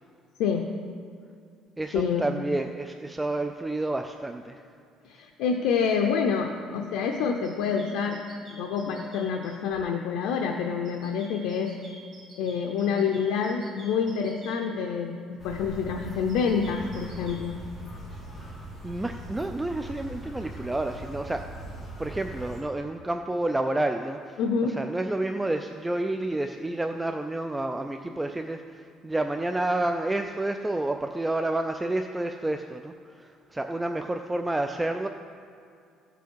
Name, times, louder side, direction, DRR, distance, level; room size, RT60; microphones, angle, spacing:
voice 1, 0.4-0.7 1.9-2.2 5.0-8.2 8.5-11.7 12.4-17.6 24.4-24.8, left 6 dB, 85° left, 2 dB, 0.7 m, -27 dB
voice 2, 1.8-4.6 18.8-21.5 22.0-35.1, right 2 dB, 10° right, 6 dB, 0.4 m, -30 dB
sound 1, 7.4-9.5 10.8-14.6 16.3-17.4, right 2 dB, 40° right, 3.2 m, -50 dB
sound 2, 15.4-22.6, right 1 dB, 20° left, 2.3 m, -41 dB
15.5 x 7.0 x 4.6 m, 2.4 s
cardioid pair, 140°, 0 cm